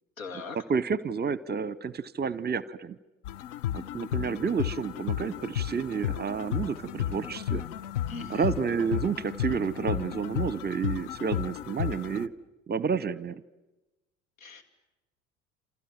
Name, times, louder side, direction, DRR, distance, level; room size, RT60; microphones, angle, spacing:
voice 1, 0.2-0.6 8.1-8.5 14.4-14.6, left 4 dB, 80° left, 8 dB, 2.7 m, -40 dB
voice 2, 0.7-3.0 3.7-7.6 8.3-12.3 12.7-13.4, right 6 dB, 25° right, 20 dB, 0.9 m, -30 dB
sound 1, 3.2-12.3, left 11 dB, 65° left, 1.0 m, -33 dB
28.5 x 28.5 x 7.4 m, 1.0 s
figure-of-eight pair, 65°, 40 cm